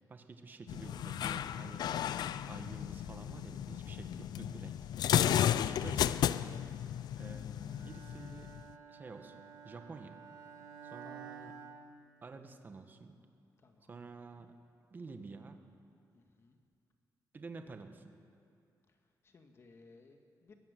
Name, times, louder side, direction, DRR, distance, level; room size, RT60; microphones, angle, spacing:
voice 1, 0.1-4.8 5.6-6.6 7.2-8.5 8.9-10.2 10.8-11.6 12.2-13.2 13.9-14.6 14.9-15.6 17.3-18.1, right 4 dB, 25° right, 7 dB, 1.3 m, -50 dB
sound 1, 0.7-8.7, left 10 dB, 70° left, 0.5 m, -34 dB
voice 2, 0.7-1.0 4.1-4.4 11.0-11.3 13.6-14.0 16.1-16.6 18.9-19.0 19.2-20.5, left 3 dB, 40° left, 4 dB, 1.8 m, -60 dB
Bowed string instrument, 7.7-12.6, right 6 dB, 65° right, 2.0 m, -52 dB
22.0 x 15.0 x 9.6 m, 2.4 s
wide cardioid pair, 175°, 7 cm